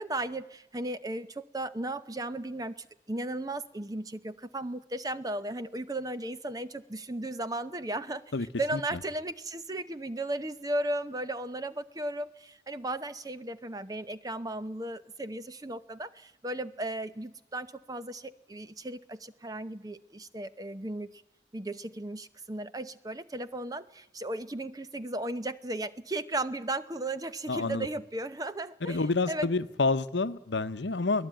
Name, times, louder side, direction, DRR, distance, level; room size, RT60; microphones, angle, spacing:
voice 1, 0.0-21.1 21.5-29.5, right 1 dB, 20° right, 12 dB, 0.8 m, -35 dB
voice 2, 27.5-27.9 28.9-31.3, left 3 dB, 80° left, 13 dB, 0.9 m, -28 dB
23.5 x 17.5 x 9.1 m, 0.88 s
head